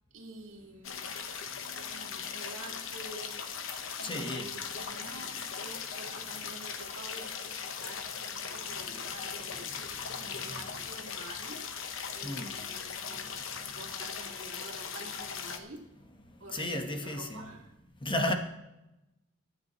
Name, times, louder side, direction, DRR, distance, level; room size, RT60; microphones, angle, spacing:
voice 1, 0.1-1.2 1.7-3.5 4.0-11.8 12.1-13.3 13.6-15.9 16.4-17.7, right 2 dB, 70° right, 2.3 m, -49 dB
sound 1, 0.8-15.6, left 6 dB, 70° left, 1.1 m, -39 dB
voice 2, 4.0-4.5 8.9-9.0 9.5-9.7 10.1-10.7 12.2-12.6 13.0-13.8 16.2-17.5 18.0-18.3, left 1 dB, 25° left, 1.1 m, -36 dB
23.0 x 9.5 x 3.0 m
head